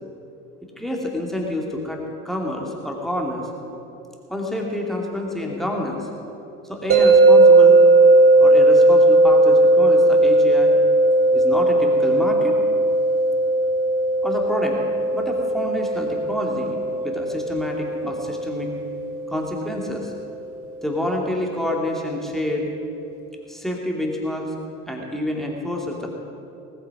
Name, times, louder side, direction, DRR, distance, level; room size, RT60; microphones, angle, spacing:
voice 1, 0.8-3.5 4.3-6.1 6.7-7.8 8.4-10.7 11.3-12.6 14.2-14.8 15.1-16.8 17.0-18.7 19.3-20.1 20.8-22.7 23.5-24.5 24.9-26.1, left 1 dB, ahead, -1 dB, 2.7 m, -28 dB
sound 1, 6.9-20.0, right 2 dB, 30° right, 2.5 m, -17 dB
19.0 x 8.9 x 6.0 m, 2.8 s
figure-of-eight pair, 55°, 46 cm